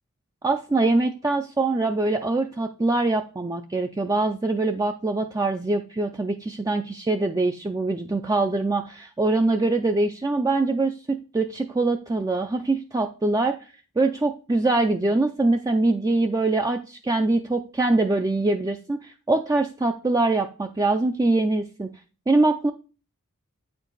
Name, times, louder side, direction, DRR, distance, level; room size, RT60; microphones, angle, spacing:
voice 1, 0.4-13.6 14.0-21.9 22.3-22.7, right 2 dB, 15° right, 5 dB, 0.4 m, -23 dB
8.4 x 4.5 x 3.9 m, 0.36 s
head